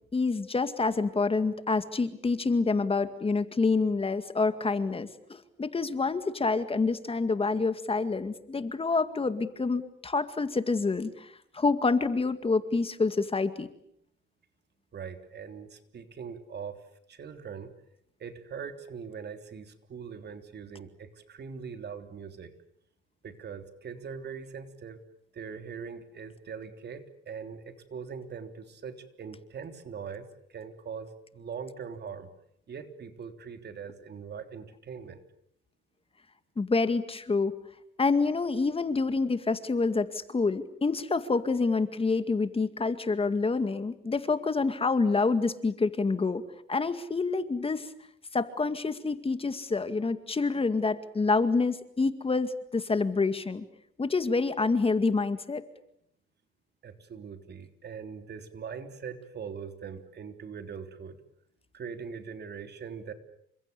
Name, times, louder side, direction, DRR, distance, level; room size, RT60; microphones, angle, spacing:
voice 1, 0.1-13.7 36.6-37.6 38.0-46.4 46.7-47.9 48.3-53.7 54.0-55.6, left 4 dB, 25° left, 10 dB, 2.1 m, -27 dB
voice 2, 14.9-16.8 17.1-17.7 18.2-22.5 23.2-25.0 25.3-32.3 32.7-35.2 56.8-61.2 61.7-63.1, right 6 dB, 55° right, 8 dB, 3.5 m, -41 dB
29.5 x 26.0 x 7.0 m, 0.72 s
cardioid pair, 105°, 21 cm